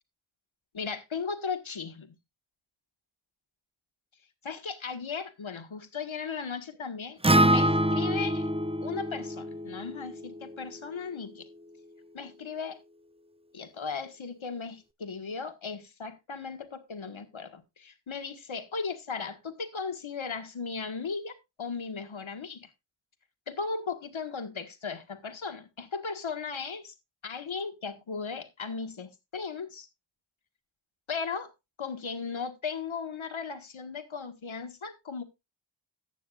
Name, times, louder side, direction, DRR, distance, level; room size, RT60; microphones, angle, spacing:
voice 1, 0.7-2.1 4.4-8.5 8.8-11.5 12.1-12.8 13.5-22.7 23.5-26.9 27.2-29.9 31.1-31.5 31.8-35.2, left 5 dB, 85° left, 1.6 m, -37 dB
Acoustic guitar, 7.2-11.5, right 1 dB, 15° right, 0.5 m, -27 dB
14.5 x 9.2 x 2.4 m
wide cardioid pair, 65°, 47 cm